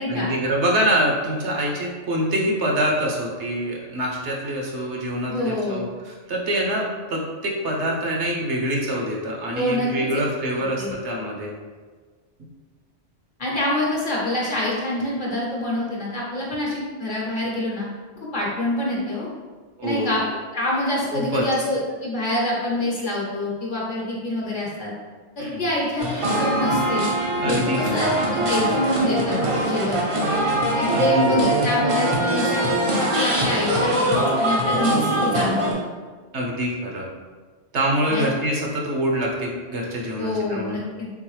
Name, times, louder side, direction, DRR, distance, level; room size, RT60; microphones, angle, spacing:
voice 1, 0.1-11.5 19.8-20.1 21.1-21.4 25.4-25.7 27.4-28.2 30.9-31.4 36.3-37.1 37.7-40.8, equal, 75° right, -1 dB, 1.1 m, -25 dB
voice 2, 5.3-5.9 9.5-10.1 10.8-10.9 13.4-17.9 18.3-19.3 19.8-20.2 20.5-24.9 25.4-27.0 27.4-30.0 30.7-32.6 33.0-35.9 38.1-38.3 40.2-41.1, left 1 dB, 45° left, -4 dB, 1.0 m, -26 dB
sound 1, 26.0-35.7, right 1 dB, 40° right, 0.5 m, -22 dB
3.9 x 3.6 x 3.1 m, 1.4 s
omnidirectional pair, 1.2 m